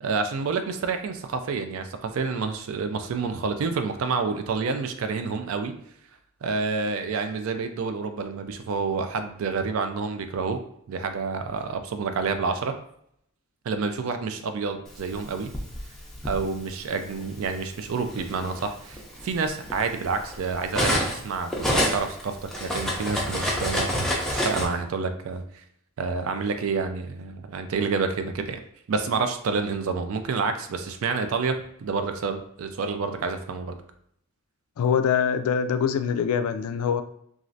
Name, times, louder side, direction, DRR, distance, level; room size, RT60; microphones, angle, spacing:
voice 1, 0.0-5.7 6.4-10.6 10.9-12.7 13.7-15.5 16.2-23.9 24.3-25.4 26.0-28.6 28.9-33.7, right 4 dB, 70° right, 7 dB, 0.4 m, -28 dB
Cutlery silverware, 15.1-16.4 17.4-17.6 18.0-21.2 21.5-24.6, equal, ahead, 0.5 m, -27 dB
voice 2, 34.8-37.0, left 7 dB, 90° left, 10 dB, 0.3 m, -24 dB
3.1 x 2.4 x 2.6 m, 0.70 s
head